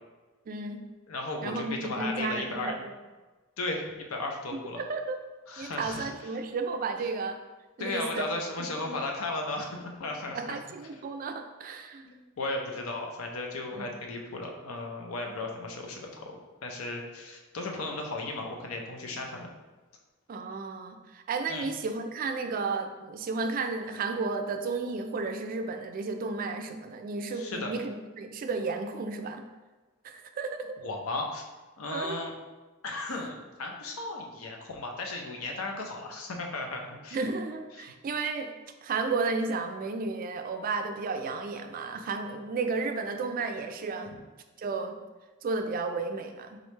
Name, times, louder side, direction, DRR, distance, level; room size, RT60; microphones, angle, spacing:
voice 1, 0.5-0.8 1.4-2.9 4.8-5.2 5.6-7.4 7.8-8.3 8.8-9.0 10.3-12.1 20.3-29.5 30.0-30.8 31.9-32.2 37.1-38.5 38.8-44.2 44.6-45.0 45.4-46.6, right 4 dB, 40° right, 6 dB, 0.3 m, -33 dB
voice 2, 1.1-2.8 3.6-4.8 5.5-6.4 7.8-10.6 10.9-11.0 12.1-19.5 21.5-21.7 27.3-27.7 30.8-31.4 31.8-32.3 32.8-37.2 37.7-37.9, left 2 dB, 90° left, 2 dB, 0.6 m, -35 dB
3.8 x 3.2 x 3.1 m, 1.2 s
head